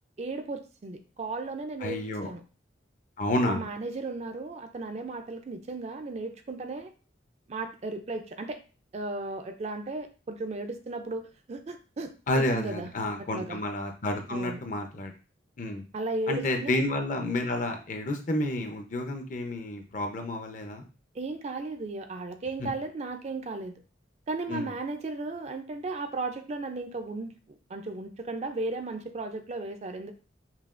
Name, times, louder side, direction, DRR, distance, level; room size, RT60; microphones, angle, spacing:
voice 1, 0.2-2.4 3.4-6.9 7.5-8.6 8.9-12.9 13.3-13.6 14.3-14.6 15.9-16.8 21.1-23.8 24.3-27.4 27.7-30.1, right 2 dB, 35° right, 7 dB, 0.4 m, -35 dB
voice 2, 1.8-2.3 3.2-3.7 12.3-15.1 15.6-15.8 16.3-20.8 22.6-22.7 24.5-24.7, left 1 dB, 45° left, 5 dB, 0.6 m, -30 dB
5.6 x 2.3 x 2.4 m, 0.34 s
head